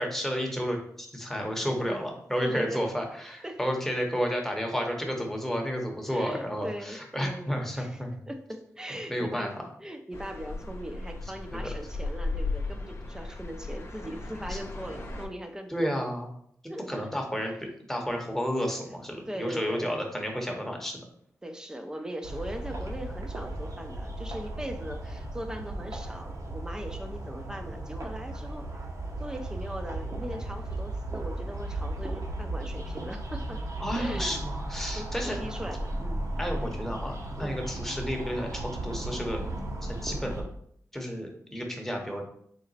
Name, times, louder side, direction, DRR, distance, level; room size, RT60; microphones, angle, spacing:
voice 1, 0.0-8.2 9.1-9.5 11.5-11.7 14.5-14.6 15.7-16.3 16.9-21.0 33.8-35.4 36.4-39.4 39.8-40.4 40.9-42.2, equal, 5° left, 1 dB, 0.9 m, -31 dB
voice 2, 2.4-2.8 3.4-3.6 6.1-8.0 8.3-9.5 9.8-15.9 16.7-17.1 18.9-19.0 19.3-19.9 21.4-28.6 29.2-33.6 33.9-34.4 34.9-36.3 37.4-37.7, equal, 10° right, 5 dB, 0.5 m, -39 dB
sound 1, 10.1-15.3, left 3 dB, 40° left, 0.7 m, -36 dB
sound 2, 22.2-40.4, right 1 dB, 60° right, 0.9 m, -35 dB
4.0 x 2.1 x 3.9 m, 0.67 s
cardioid pair, 70°, 6 cm